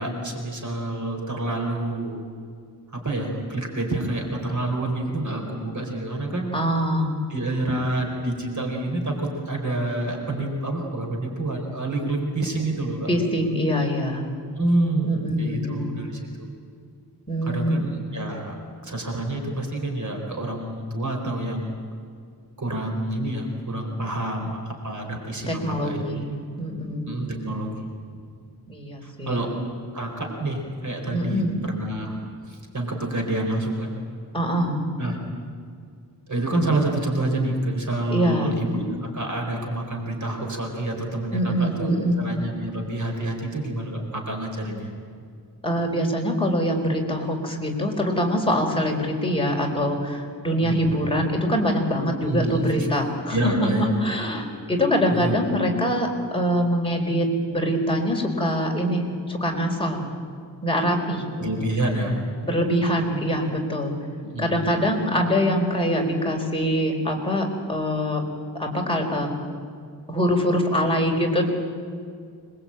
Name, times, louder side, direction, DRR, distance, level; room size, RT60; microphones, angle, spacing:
voice 1, 0.0-2.2 2.9-6.5 7.3-13.1 14.6-16.5 17.4-18.6 18.8-21.8 22.6-26.2 27.1-27.9 29.0-29.5 29.9-32.2 32.5-33.9 35.0-35.2 36.3-44.9 50.5-51.0 52.2-52.9 53.3-53.9 55.1-55.4 61.4-62.2 64.2-64.6, right 1 dB, 50° right, 2 dB, 4.4 m, -28 dB
voice 2, 6.5-7.1 13.1-14.2 15.0-16.0 17.3-17.8 25.5-27.1 28.7-29.5 31.1-31.6 34.3-34.8 38.1-38.5 41.3-42.3 45.6-56.1 56.3-60.0 60.6-61.2 62.4-63.9 64.4-68.2 68.6-69.3 70.1-71.4, equal, 15° left, 0 dB, 4.2 m, -24 dB
26.0 x 21.0 x 8.9 m, 2.3 s
wide cardioid pair, 130°, 39 cm